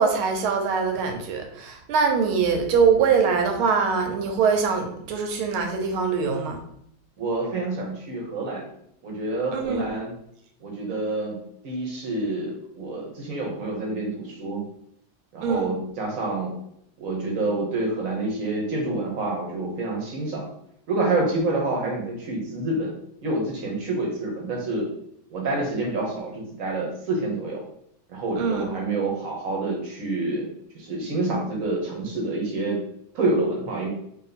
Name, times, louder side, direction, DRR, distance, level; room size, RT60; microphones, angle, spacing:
voice 1, 0.0-6.6 9.5-9.8 15.4-15.7 28.4-28.7, right 5 dB, 90° right, 4 dB, 1.6 m, -23 dB
voice 2, 7.2-8.7 9.0-10.1 10.6-11.4 11.6-14.6 15.3-16.5 17.0-20.5 20.9-22.9 23.2-24.9 25.3-27.6 28.1-32.8 33.1-33.9, right 2 dB, 50° right, -1 dB, 1.1 m, -27 dB
3.0 x 2.9 x 4.0 m, 0.71 s
omnidirectional pair, 2.2 m